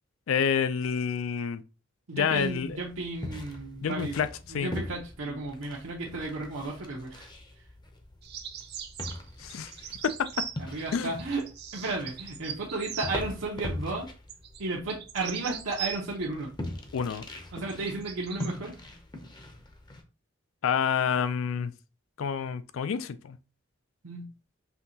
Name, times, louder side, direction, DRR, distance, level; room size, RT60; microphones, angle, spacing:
voice 1, 0.3-1.6 2.1-2.8 3.8-4.3 4.5-4.7 9.4-9.7 10.0-10.1 10.9-11.1 16.9-17.3 20.6-21.7 22.2-23.4, left 7 dB, 85° left, 0.4 m, -28 dB
voice 2, 2.1-4.2 4.5-7.3 7.6-7.7 10.6-11.4 11.7-14.1 14.6-16.5 17.5-18.8 24.0-24.3, right 2 dB, 85° right, 0.9 m, -34 dB
sound 1, 2.3-20.0, left 1 dB, 20° left, 0.6 m, -42 dB
sound 2, 8.2-13.1 14.3-16.3 17.5-18.5, right 8 dB, 55° right, 0.6 m, -40 dB
5.6 x 2.8 x 2.7 m
head